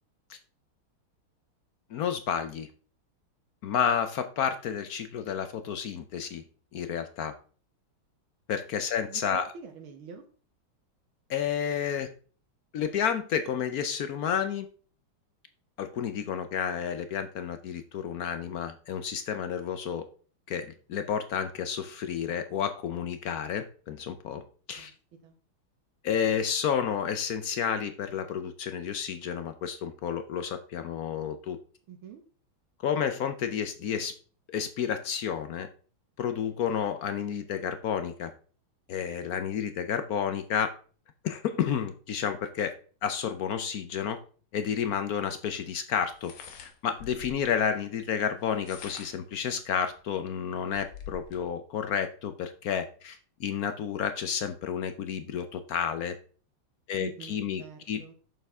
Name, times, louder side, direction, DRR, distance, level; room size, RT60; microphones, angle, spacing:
voice 1, 1.9-2.7 3.6-6.4 6.7-7.3 8.5-9.5 11.3-12.1 12.7-14.7 15.8-20.1 20.5-24.4 24.7-24.9 26.0-31.6 32.8-34.1 34.5-35.7 36.2-38.3 38.9-40.7 41.2-42.7 43.0-44.2 44.5-46.3 46.6-56.1 56.9-57.6 57.9-58.0, left 8 dB, 70° left, 9 dB, 0.8 m, -31 dB
voice 2, 9.1-10.3 24.8-24.9 25.2-25.4 31.9-32.2 57.0-58.1, right 7 dB, 75° right, 4 dB, 1.8 m, -46 dB
sound 1, 46.1-47.5 48.4-49.3 49.9-50.0 50.4-51.4, left 6 dB, 90° left, 2.1 m, -46 dB
8.9 x 6.8 x 3.5 m, 0.41 s
omnidirectional pair, 2.3 m